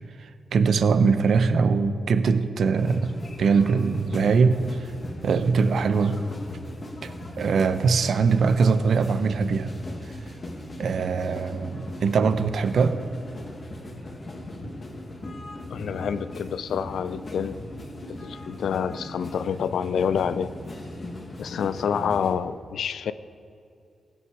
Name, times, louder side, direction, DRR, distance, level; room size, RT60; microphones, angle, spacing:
voice 1, 0.2-4.9 5.2-6.2 7.0-9.7 10.1-10.2 10.8-13.0, right 5 dB, 70° right, 11 dB, 0.7 m, -22 dB
sound 1, 2.8-22.3, left 1 dB, 35° left, 1.5 m, -38 dB
voice 2, 15.7-17.6 18.2-20.5 21.4-23.1, left 7 dB, 85° left, 14 dB, 0.4 m, -27 dB
16.0 x 8.8 x 4.8 m, 2.5 s
wide cardioid pair, 125°, 0 cm